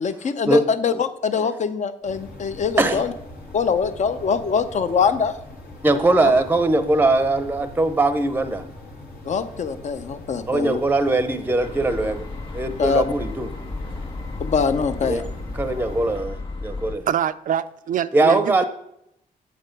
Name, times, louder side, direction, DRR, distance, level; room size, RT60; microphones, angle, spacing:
voice 1, 0.0-3.1 3.5-5.3 6.2-6.3 9.3-10.8 12.8-13.0 14.4-15.2, left 6 dB, 50° left, 11 dB, 0.6 m, -23 dB
sound 1, 2.0-16.2, left 2 dB, 75° left, 1.6 m, -41 dB
voice 2, 5.8-8.6 10.5-12.2 12.5-13.5 15.0-15.2 15.5-17.0 18.1-18.6, right 2 dB, 10° right, 10 dB, 0.6 m, -20 dB
sound 2, 11.6-17.0, left 3 dB, 35° left, 1.7 m, -33 dB
voice 3, 17.1-18.6, right 9 dB, 60° right, 14 dB, 0.4 m, -25 dB
7.8 x 4.1 x 5.2 m, 0.77 s
cardioid pair, 90°, 16 cm